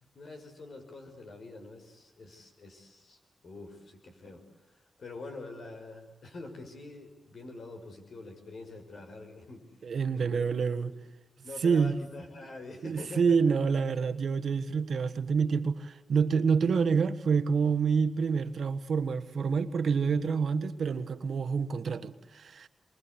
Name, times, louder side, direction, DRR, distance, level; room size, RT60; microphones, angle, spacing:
voice 1, 0.0-9.6 10.1-10.5 10.8-11.0 11.4-13.7, left 2 dB, 70° left, 6.0 m, -46 dB
voice 2, 9.8-10.9 11.6-11.9 12.8-22.7, right 5 dB, 70° right, 1.4 m, -27 dB
27.5 x 23.5 x 8.4 m
cardioid pair, 65°, 0 cm